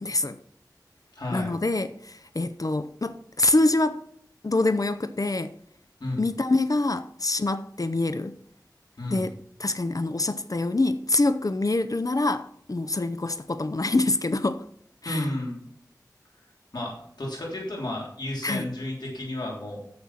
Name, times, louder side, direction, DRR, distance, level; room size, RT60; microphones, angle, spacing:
voice 1, 0.0-0.4 1.3-4.0 4.4-5.5 6.2-8.4 9.1-9.3 9.6-14.6 15.0-15.3 18.4-18.7, left 2 dB, 55° left, 0.6 m, -25 dB
voice 2, 1.1-1.5 6.0-6.2 9.0-9.3 15.0-15.6 16.7-19.8, left 1 dB, 90° left, 3.2 m, -32 dB
9.7 x 7.9 x 5.7 m
wide cardioid pair, 45°, 7 cm